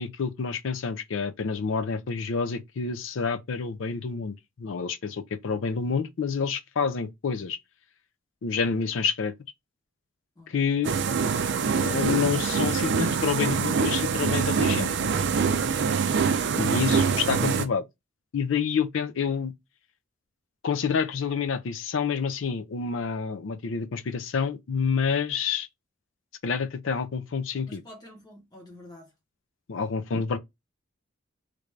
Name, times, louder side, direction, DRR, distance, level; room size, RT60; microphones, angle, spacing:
voice 1, 0.0-7.6 8.4-9.3 10.5-10.9 11.8-14.9 16.6-17.8 18.3-19.5 20.6-25.7 26.4-27.8 29.7-30.4, left 6 dB, 70° left, 0.4 m, -28 dB
sound 1, 10.8-17.7, right 5 dB, 60° right, 0.4 m, -25 dB
voice 2, 27.7-29.1 29.7-29.9, left 1 dB, 20° left, 1.0 m, -48 dB
3.3 x 2.5 x 3.2 m
head